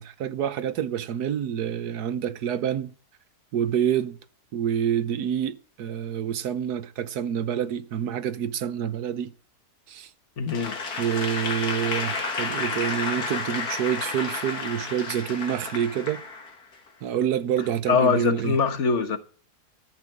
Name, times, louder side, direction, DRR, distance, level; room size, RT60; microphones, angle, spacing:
voice 1, 0.0-2.9 3.5-4.2 4.5-9.3 9.9-10.1 11.0-16.2 17.0-18.6, right 9 dB, 80° right, 1.5 m, -27 dB
voice 2, 10.4-10.8 17.9-19.2, left 5 dB, 50° left, 1.5 m, -23 dB
Applause / Crowd, 10.5-16.9, left 4 dB, 70° left, 2.3 m, -31 dB
13.5 x 6.8 x 8.7 m
omnidirectional pair, 1.7 m